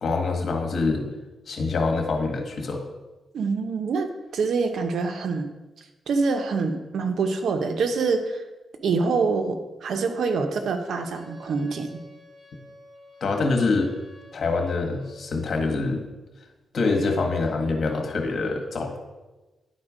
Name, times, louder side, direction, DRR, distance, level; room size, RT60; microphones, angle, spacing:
voice 1, 0.0-1.0 1.5-2.8 13.2-13.9 14.3-16.0 16.7-19.0, left 3 dB, 60° left, 3 dB, 1.5 m, -25 dB
voice 2, 3.3-4.1 4.3-5.5 6.1-8.4 8.8-12.0, right 4 dB, 75° right, 6 dB, 0.8 m, -25 dB
Wind instrument woodwind instrument, 11.1-15.3, equal, 10° left, 2.6 m, -50 dB
10.5 x 4.4 x 5.0 m, 1.1 s
cardioid pair, 95°, 0 cm